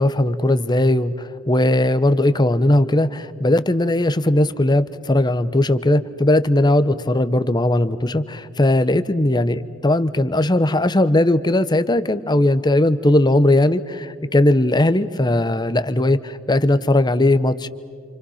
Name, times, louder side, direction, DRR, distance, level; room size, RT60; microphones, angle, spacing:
voice 1, 0.0-17.7, left 1 dB, 20° left, 13 dB, 0.9 m, -18 dB
29.0 x 27.5 x 5.7 m, 2.1 s
head